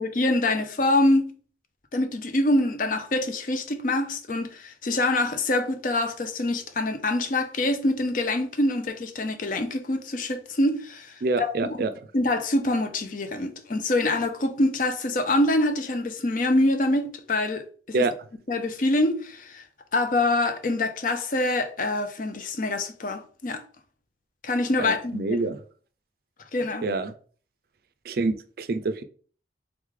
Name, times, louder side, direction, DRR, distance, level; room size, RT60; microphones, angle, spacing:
voice 1, 0.0-1.4 1.9-11.8 12.1-18.0 18.5-19.6 19.9-23.6 24.4-25.5 26.5-26.8, left 2 dB, 50° left, 0.6 m, -25 dB
voice 2, 11.2-11.9 17.9-18.1 24.8-25.6 26.8-27.1 28.1-29.0, right 3 dB, 55° right, 0.4 m, -26 dB
3.6 x 3.2 x 3.7 m
head